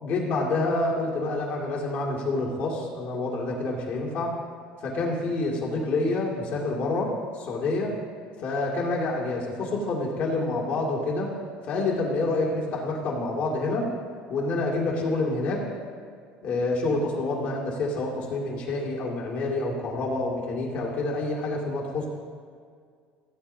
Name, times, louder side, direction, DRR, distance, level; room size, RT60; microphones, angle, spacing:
voice 1, 0.0-4.3 4.8-7.9 8.4-11.3 11.6-13.9 14.3-15.6 16.4-22.1, left 2 dB, 50° left, -2 dB, 2.3 m, -27 dB
16.5 x 9.2 x 2.8 m, 2.1 s
cardioid pair, 150°, 3 cm